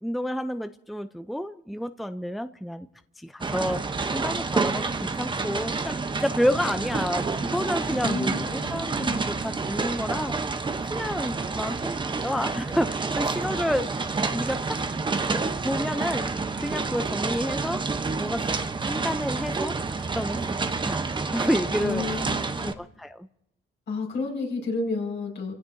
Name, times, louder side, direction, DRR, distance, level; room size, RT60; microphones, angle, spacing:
voice 1, 0.0-2.9 3.2-3.8 4.1-10.4 10.9-13.9 14.3-14.8 15.6-16.3 16.6-17.8 18.2-18.4 18.8-19.8 20.1-21.1 21.3-22.0 22.6-23.3, equal, ahead, 10 dB, 0.5 m, -29 dB
sound 1, 3.4-22.7, right 4 dB, 25° right, 0.9 m, -29 dB
voice 2, 8.0-9.2 21.8-22.7 23.9-25.5, left 3 dB, 65° left, 0 dB, 5.4 m, -31 dB
29.5 x 16.0 x 2.7 m, 0.85 s
cardioid pair, 90°, 20 cm